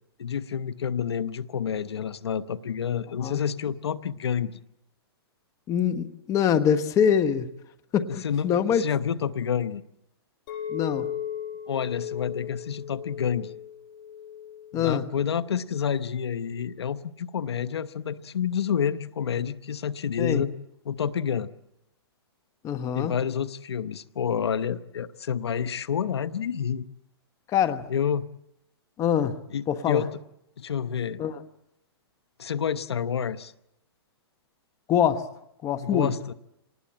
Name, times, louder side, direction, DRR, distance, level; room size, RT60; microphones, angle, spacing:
voice 1, 0.2-4.6 8.2-9.8 11.7-13.5 14.7-20.5 20.8-21.5 22.9-26.8 27.9-28.2 29.5-30.1 30.6-31.2 32.4-33.5 35.8-36.3, left 7 dB, 90° left, 1.1 m, -29 dB
voice 2, 5.7-7.5 7.9-8.8 10.7-11.1 14.7-15.0 20.2-20.4 22.6-23.1 27.5-27.9 29.0-29.4 29.7-30.0 31.2-31.4 34.9-35.3 35.6-36.1, left 8 dB, 25° left, 1.3 m, -24 dB
Chink clink, 10.5-15.7, left 9 dB, 55° left, 7.4 m, -37 dB
27.5 x 19.5 x 8.8 m
hypercardioid pair, 140°, 13 cm